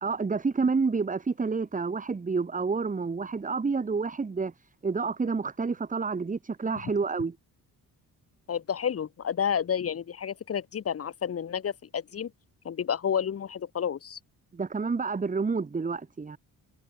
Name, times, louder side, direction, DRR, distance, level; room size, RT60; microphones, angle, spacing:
voice 1, 0.0-4.5 4.8-7.4 14.5-16.4, right 4 dB, 20° right, 2.5 m, -29 dB
voice 2, 8.5-12.3 12.6-14.2, left 8 dB, 40° left, 1.6 m, -30 dB
cardioid pair, 145°, 36 cm